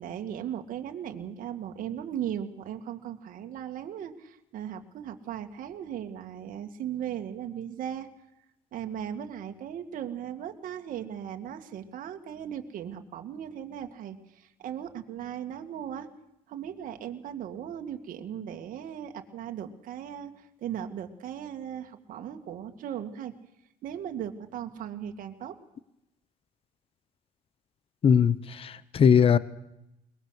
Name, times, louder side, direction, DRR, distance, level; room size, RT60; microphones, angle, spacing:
voice 1, 0.0-8.1 8.7-16.1 16.5-23.3 23.8-25.5, right 9 dB, 55° right, 5 dB, 2.2 m, -37 dB
voice 2, 28.0-29.4, left 7 dB, 35° left, 17 dB, 0.9 m, -20 dB
22.5 x 20.5 x 6.6 m, 0.86 s
cardioid pair, 120°, 16 cm